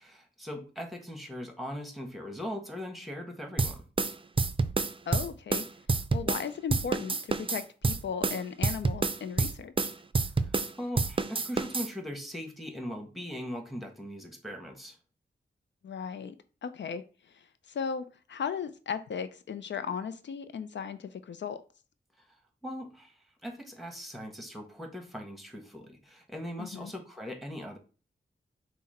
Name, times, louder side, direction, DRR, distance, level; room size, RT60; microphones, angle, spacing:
voice 1, 0.0-3.9 10.4-15.0 22.6-23.1 23.4-27.8, equal, ahead, 4 dB, 1.2 m, -40 dB
sound 1, 3.6-6.5 6.7-10.7 11.0-11.9, right 4 dB, 30° right, 0.4 m, -28 dB
voice 2, 5.1-5.6 6.1-9.9 15.8-16.4 16.6-21.6 26.6-26.9, left 6 dB, 75° left, 11 dB, 0.4 m, -36 dB
5.7 x 2.1 x 4.2 m, 0.36 s
cardioid pair, 55°, 19 cm